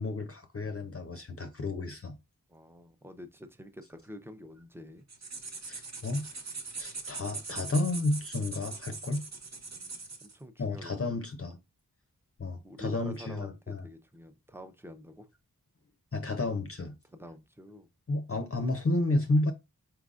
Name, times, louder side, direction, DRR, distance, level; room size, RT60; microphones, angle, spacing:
voice 1, 0.0-2.2 5.7-6.3 6.8-9.2 10.6-11.6 12.4-13.8 16.1-16.9 18.1-19.5, left 2 dB, 40° left, 0.6 m, -31 dB
voice 2, 2.5-5.0 9.0-9.1 9.7-10.9 12.6-15.3 17.0-17.9, equal, 5° right, 0.7 m, -48 dB
sound 1, 5.1-10.3, right 4 dB, 45° right, 0.8 m, -41 dB
4.4 x 3.8 x 2.4 m
wide cardioid pair, 40°, 37 cm